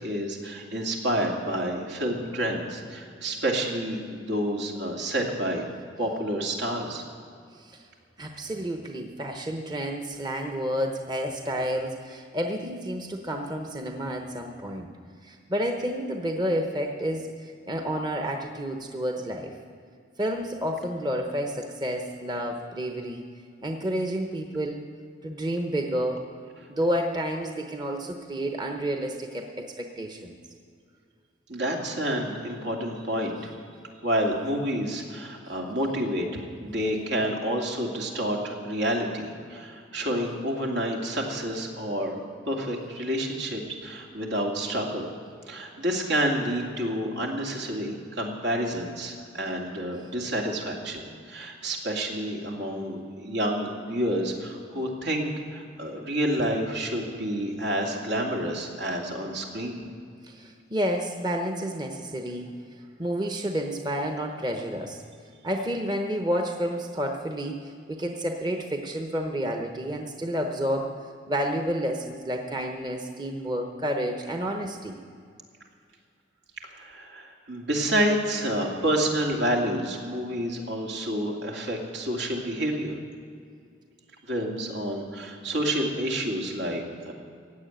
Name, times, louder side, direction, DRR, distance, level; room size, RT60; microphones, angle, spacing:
voice 1, 0.0-5.6 6.0-7.0 31.5-33.5 34.0-45.1 45.5-59.8 76.6-83.0 84.2-87.1, right 1 dB, 75° right, 0 dB, 2.5 m, -29 dB
voice 2, 8.2-14.9 15.2-19.6 20.2-23.3 23.6-24.8 25.2-26.2 26.7-30.4 60.2-62.5 63.0-65.0 65.4-71.0 71.3-75.0, equal, 25° right, 3 dB, 0.9 m, -30 dB
16.0 x 8.0 x 9.1 m, 2.3 s
head